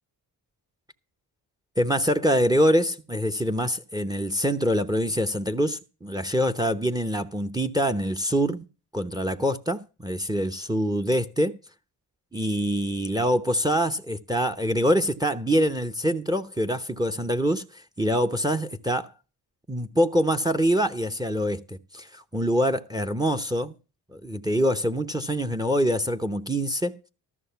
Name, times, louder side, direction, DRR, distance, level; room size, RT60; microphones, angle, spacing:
voice 1, 1.8-8.6 8.9-11.6 12.3-19.1 19.7-23.7 24.1-27.0, equal, 10° right, 1.0 m, -25 dB
13.5 x 6.4 x 5.8 m
cardioid pair, 80°, 39 cm